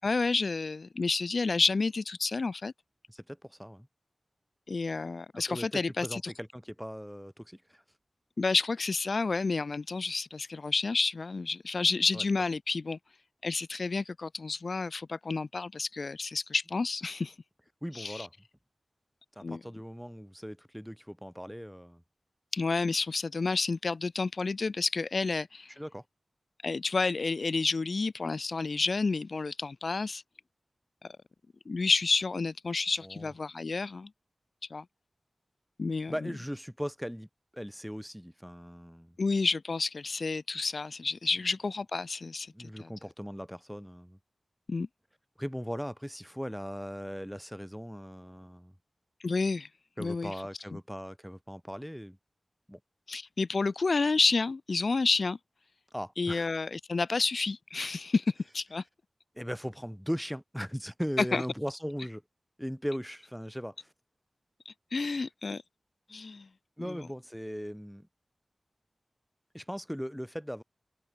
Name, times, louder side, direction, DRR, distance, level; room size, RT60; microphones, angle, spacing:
voice 1, 0.0-2.7 4.7-6.3 8.4-13.0 13.4-17.3 17.9-18.3 19.4-19.6 22.5-25.7 26.6-30.2 31.0-31.2 31.7-34.1 34.7-34.8 35.8-36.3 39.2-42.9 44.7-44.9 49.2-49.7 50.0-50.3 50.7-50.8 53.1-55.4 56.2-58.8 61.3-61.4 64.7-65.6 66.1-66.5 66.8-67.0, left 3 dB, 70° left, 0.6 m, -30 dB
voice 2, 3.1-3.9 5.3-7.8 12.1-12.2 17.8-18.3 19.3-22.0 25.8-26.0 33.0-33.3 36.1-37.3 37.5-39.2 42.5-44.2 45.4-48.7 50.0-52.2 52.7-52.8 55.9-56.5 59.3-62.2 62.6-63.9 66.8-68.1 69.5-70.6, equal, ahead, 1.4 m, -38 dB
cardioid pair, 45°, 0 cm